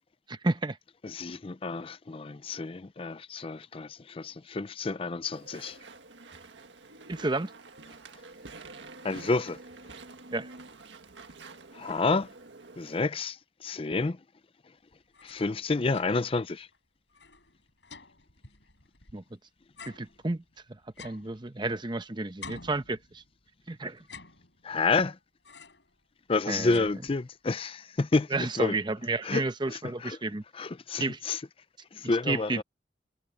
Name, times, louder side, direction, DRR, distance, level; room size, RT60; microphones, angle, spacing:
voice 1, 0.3-0.8 7.1-7.5 10.3-10.5 19.1-19.2 19.9-20.4 21.0-23.2 23.7-24.0 26.5-26.9 28.3-30.4 31.0-31.2 32.3-32.6, right 2 dB, 25° right, 0.8 m, -31 dB
voice 2, 1.0-5.8 9.0-9.6 11.7-12.3 12.8-13.4 13.6-14.2 15.2-16.7 24.6-25.2 26.3-28.3 28.6-28.7 29.2-30.2 30.5-31.4 31.9-32.6, left 3 dB, 30° left, 0.5 m, -29 dB
Walk footsteps / Chatter / Squeak, 5.3-13.0, right 3 dB, 90° right, 1.7 m, -48 dB
sound 1, 14.9-16.4 16.7-16.8 17.1-19.3 19.8-22.0 22.4-23.5 24.0-24.9 25.4-26.0 26.3-27.5, left 4 dB, 75° left, 7.5 m, -50 dB
head